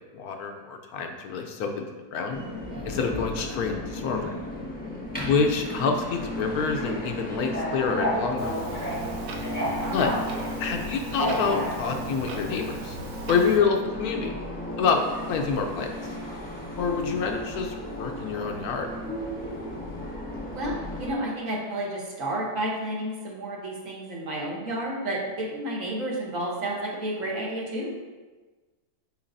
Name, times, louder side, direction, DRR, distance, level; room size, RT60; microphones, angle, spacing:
voice 1, 0.1-2.4 2.8-4.4 5.3-8.6 9.9-10.1 10.6-13.0 13.3-14.4 14.8-15.0 15.3-15.9 16.8-18.9, left 5 dB, 70° left, 3 dB, 1.0 m, -27 dB
Subway metro underground, 2.3-21.1, equal, 5° left, 1.0 m, -33 dB
Clock, 8.4-13.6, right 3 dB, 70° right, 1.1 m, -40 dB
voice 2, 9.8-10.1 20.5-27.9, right 1 dB, 55° right, -2 dB, 1.3 m, -31 dB
7.1 x 5.1 x 2.6 m, 1.3 s
omnidirectional pair, 1.7 m